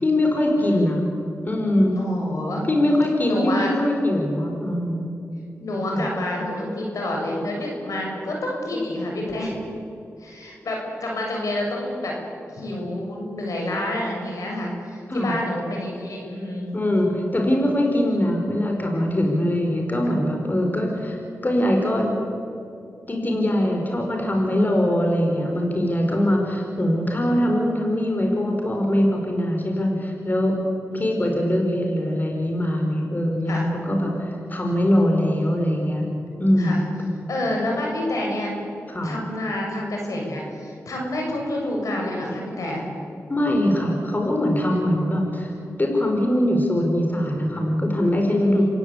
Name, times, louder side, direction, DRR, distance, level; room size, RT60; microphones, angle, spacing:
voice 1, 0.0-1.0 1.5-2.0 2.6-5.0 5.9-6.0 15.1-15.3 16.7-22.1 23.1-30.6 30.9-36.1 36.4-36.8 38.9-39.1 43.3-45.5 45.8-48.6, left 1 dB, 30° left, 2 dB, 5.0 m, -22 dB
voice 2, 2.0-2.6 3.3-3.7 5.6-9.6 10.2-12.2 12.5-16.7 30.9-31.1 33.5-33.7 36.6-36.8 37.3-38.5 39.0-42.9 48.6-48.7, left 1 dB, 75° left, -1 dB, 7.2 m, -28 dB
27.5 x 16.0 x 8.5 m, 2.6 s
cardioid pair, 50°, 6 cm